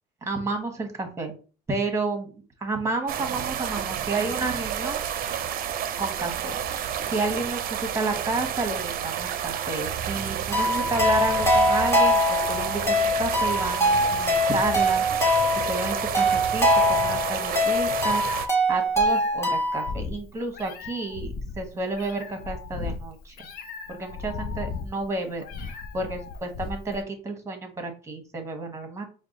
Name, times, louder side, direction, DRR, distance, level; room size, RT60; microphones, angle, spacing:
voice 1, 0.2-1.3 1.7-5.4 6.0-18.2 18.7-23.4 23.9-29.1, right 3 dB, 15° right, 4 dB, 1.2 m, -31 dB
sound 1, 3.1-18.5, right 9 dB, 60° right, 0.5 m, -30 dB
sound 2, 10.5-19.9, left 1 dB, 15° left, 1.4 m, -23 dB
Meow, 17.6-27.0, left 4 dB, 60° left, 0.7 m, -37 dB
4.6 x 2.3 x 3.8 m, 0.36 s
cardioid pair, 110°, 17 cm